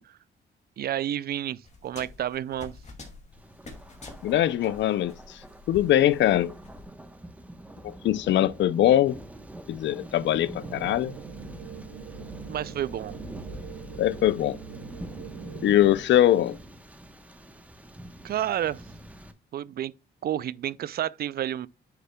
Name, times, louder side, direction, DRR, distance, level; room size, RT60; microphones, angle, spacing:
voice 1, 0.8-2.7 12.5-13.2 18.2-18.9 19.5-19.9 20.2-21.7, right 11 dB, 50° right, 0.4 m, -30 dB
sound 1, 1.6-6.8, left 3 dB, 35° left, 2.4 m, -47 dB
Thunder, 3.3-19.3, right 1 dB, 5° right, 1.0 m, -45 dB
voice 2, 4.2-5.1 5.7-6.5 8.0-9.2 9.7-11.1 14.0-14.6 15.6-16.6, left 12 dB, 65° left, 0.5 m, -22 dB
sound 2, 10.6-16.0, right 5 dB, 80° right, 3.4 m, -42 dB
9.5 x 6.7 x 2.3 m
cardioid pair, 90°, 20 cm